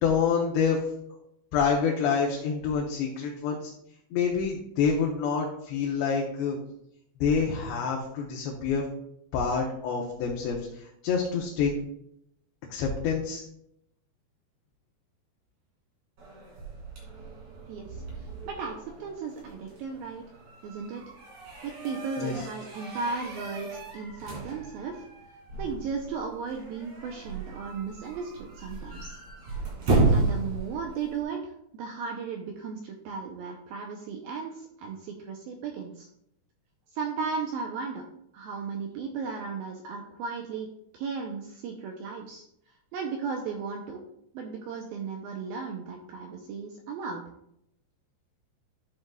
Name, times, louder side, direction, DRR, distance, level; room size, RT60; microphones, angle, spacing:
voice 1, 0.0-0.8 1.5-3.7 4.1-6.6 7.2-8.8 9.3-11.7 12.7-13.4 22.2-22.4, left 6 dB, 80° left, -1 dB, 3.3 m, -27 dB
sound 1, 16.2-31.2, right 3 dB, 45° right, 3.7 m, -33 dB
voice 2, 17.7-18.0 18.5-20.2 20.6-21.0 21.6-25.0 25.6-29.2 29.9-36.1 36.9-38.0 38.3-40.7 40.9-42.4 42.9-44.0 44.3-47.2, right 5 dB, 80° right, 2 dB, 2.2 m, -35 dB
12.0 x 7.7 x 2.4 m, 0.76 s
omnidirectional pair, 5.0 m